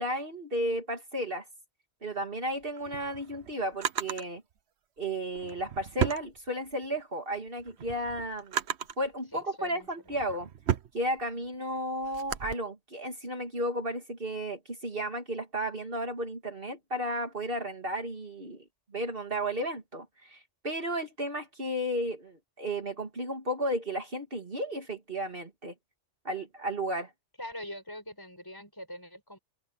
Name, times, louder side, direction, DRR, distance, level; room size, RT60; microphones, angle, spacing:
voice 1, 0.0-1.4 2.0-4.4 5.0-8.6 9.0-10.5 10.9-18.6 18.9-25.7 26.2-27.1, right 1 dB, 50° right, 2.9 m, -33 dB
Drawer open or close, 2.6-4.3 5.3-6.9 7.4-9.1 9.7-12.5, right 9 dB, 70° right, 1.1 m, -34 dB
voice 2, 9.3-9.9 27.4-29.4, left 1 dB, 20° left, 5.1 m, -43 dB
omnidirectional pair, 1.2 m